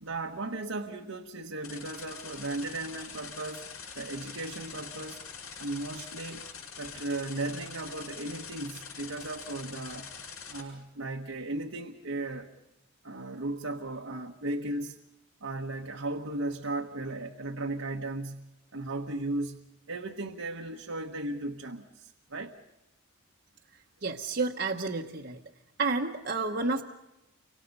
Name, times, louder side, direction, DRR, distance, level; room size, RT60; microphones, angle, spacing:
voice 1, 0.0-3.6 3.9-5.2 5.6-10.1 10.5-12.5 13.0-15.0 15.4-19.6 19.9-22.5, right 2 dB, 80° right, 1 dB, 1.2 m, -36 dB
sound 1, 1.6-10.6, left 6 dB, 85° left, 7.3 m, -44 dB
voice 2, 24.0-25.4 25.8-26.8, right 3 dB, 50° right, 1 dB, 1.0 m, -30 dB
30.0 x 25.0 x 5.4 m, 0.93 s
head